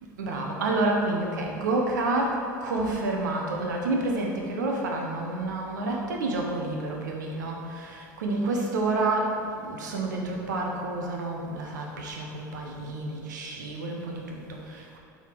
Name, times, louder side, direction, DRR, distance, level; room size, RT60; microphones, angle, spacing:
voice 1, 0.2-15.0, right 2 dB, 75° right, 0 dB, 1.1 m, -29 dB
7.4 x 4.1 x 5.2 m, 2.4 s
hypercardioid pair, 75°, 10 cm